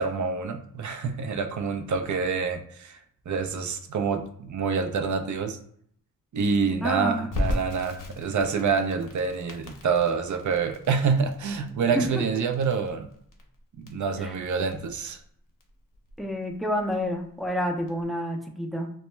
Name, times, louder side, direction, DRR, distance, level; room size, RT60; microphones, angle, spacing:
voice 1, 0.0-3.0 3.3-5.6 6.3-13.1 13.8-15.2, right 5 dB, 55° right, 6 dB, 0.5 m, -27 dB
voice 2, 6.8-7.3 11.9-12.2 14.2-14.3 16.2-18.9, equal, ahead, 3 dB, 0.4 m, -29 dB
Crackle, 7.3-18.0, left 1 dB, 65° left, 0.6 m, -37 dB
2.2 x 2.1 x 3.0 m, 0.65 s
cardioid pair, 50°, 35 cm